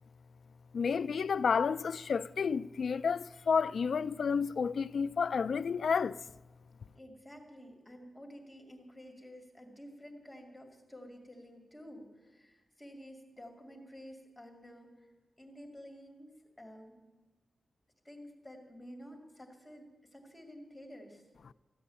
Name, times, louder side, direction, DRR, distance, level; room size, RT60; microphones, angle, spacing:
voice 1, 0.7-6.2, left 6 dB, 70° left, 0.4 m, -30 dB
voice 2, 6.9-15.1 15.4-17.0 18.0-21.2, equal, 10° left, 2.3 m, -51 dB
14.5 x 8.4 x 10.0 m
wide cardioid pair, 125°, 0 cm